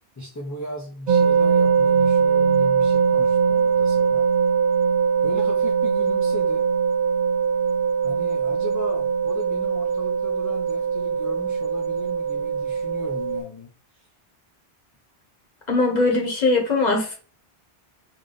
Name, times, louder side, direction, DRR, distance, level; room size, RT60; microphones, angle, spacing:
voice 1, 0.2-4.3 5.2-6.7 8.0-14.1, left 1 dB, 25° left, 0 dB, 0.4 m, -36 dB
sound 1, 1.1-13.4, right 6 dB, 55° right, 0.7 m, -21 dB
voice 2, 15.7-17.1, left 3 dB, 45° left, 2 dB, 1.0 m, -20 dB
3.4 x 2.7 x 3.7 m, 0.40 s
omnidirectional pair, 1.0 m